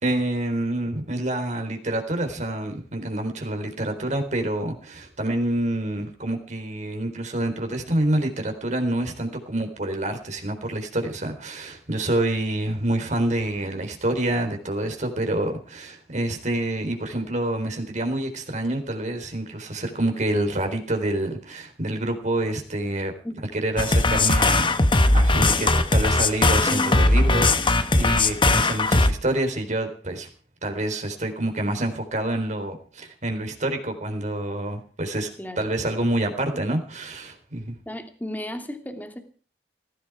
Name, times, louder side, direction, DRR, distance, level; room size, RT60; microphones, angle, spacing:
voice 1, 0.0-23.1 23.5-24.7 25.1-30.3 30.6-35.3 35.6-37.7, right 1 dB, 45° right, 5 dB, 3.9 m, -27 dB
sound 1, 23.8-29.1, left 2 dB, 30° left, 1.3 m, -19 dB
voice 2, 37.9-39.2, left 1 dB, 10° left, 6 dB, 2.6 m, -35 dB
18.0 x 16.0 x 4.8 m, 0.41 s
head